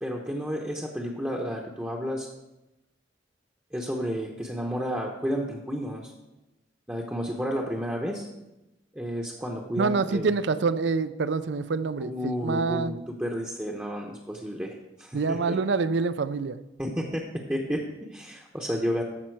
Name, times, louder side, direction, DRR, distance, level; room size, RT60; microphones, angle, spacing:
voice 1, 0.0-2.3 3.7-6.1 6.9-8.2 8.9-10.3 12.0-15.6 16.8-19.0, equal, 10° right, -2 dB, 0.8 m, -31 dB
voice 2, 9.8-13.0 15.1-16.6, right 4 dB, 75° right, 14 dB, 0.5 m, -26 dB
13.5 x 5.5 x 4.6 m, 0.98 s
head